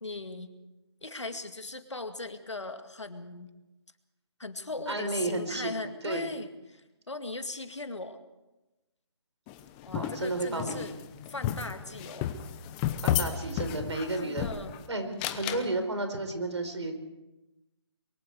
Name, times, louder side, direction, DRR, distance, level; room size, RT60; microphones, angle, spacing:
voice 1, 0.0-0.5 1.0-3.5 4.4-8.2 9.8-11.0 11.3-12.4 14.2-14.7, left 2 dB, 90° left, 8 dB, 2.1 m, -39 dB
voice 2, 4.9-5.7 6.0-6.3 9.9-10.9 13.0-14.5 14.9-16.9, right 2 dB, 80° right, 7 dB, 4.5 m, -32 dB
sound 1, 9.5-14.8 15.2-15.6, left 11 dB, 20° left, 1.0 m, -33 dB
23.5 x 23.0 x 4.8 m, 1.0 s
figure-of-eight pair, 150°, 15 cm